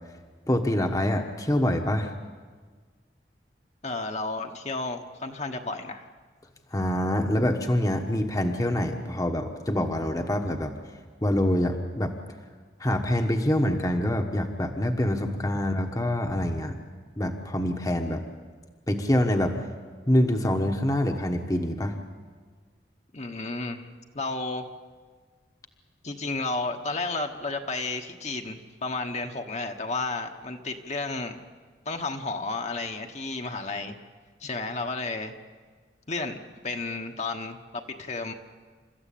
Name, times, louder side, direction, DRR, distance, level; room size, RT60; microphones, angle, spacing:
voice 1, 0.5-2.1 6.7-10.7 11.2-12.1 12.8-16.8 17.2-18.2 18.9-19.5 20.1-21.9, left 1 dB, 20° left, 4 dB, 1.2 m, -25 dB
voice 2, 3.8-6.1 23.1-23.9 24.1-24.7 26.0-31.4 31.8-34.0 34.4-35.3 36.1-36.4 36.6-38.3, left 3 dB, 40° left, 4 dB, 1.3 m, -32 dB
29.0 x 14.0 x 8.6 m, 1.5 s
head